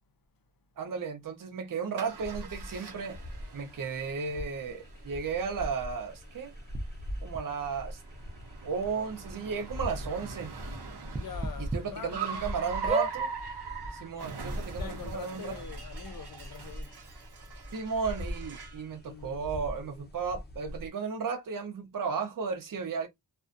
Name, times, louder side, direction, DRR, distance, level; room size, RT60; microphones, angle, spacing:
voice 1, 0.8-3.2 3.5-6.5 7.2-8.0 8.6-10.5 11.6-13.3 13.9-15.5 17.7-23.1, right 5 dB, 55° right, 0.7 m, -34 dB
Car, 2.0-18.9, right 5 dB, 90° right, 0.8 m, -43 dB
sound 1, 2.1-20.9, equal, 25° left, 0.8 m, -42 dB
sound 2, 6.7-6.8 7.3-7.4 8.4-8.5 8.8-8.9 9.3-9.4 11.1-11.8 12.3-12.4 12.9-13.1 14.0-14.1 14.3-14.4, right 2 dB, 20° right, 0.4 m, -31 dB
voice 2, 11.2-12.8 14.8-16.9 19.1-19.4, left 7 dB, 60° left, 0.6 m, -44 dB
2.4 x 2.2 x 2.5 m
wide cardioid pair, 95°, 39 cm